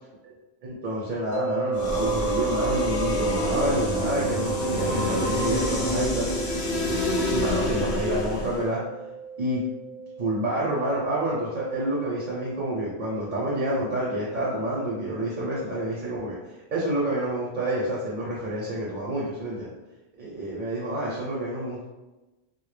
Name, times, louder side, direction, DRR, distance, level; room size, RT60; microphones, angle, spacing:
voice 1, 0.6-6.3 7.3-8.8 9.4-9.6 10.2-16.4 16.7-19.7 20.2-21.8, right 1 dB, 55° right, -5 dB, 0.6 m, -28 dB
sound 1, 1.3-14.4, right 6 dB, 75° right, 0.9 m, -34 dB
sound 2, 1.7-8.7, left 1 dB, 60° left, 0.7 m, -27 dB
2.1 x 2.0 x 3.1 m, 1.1 s
omnidirectional pair, 1.1 m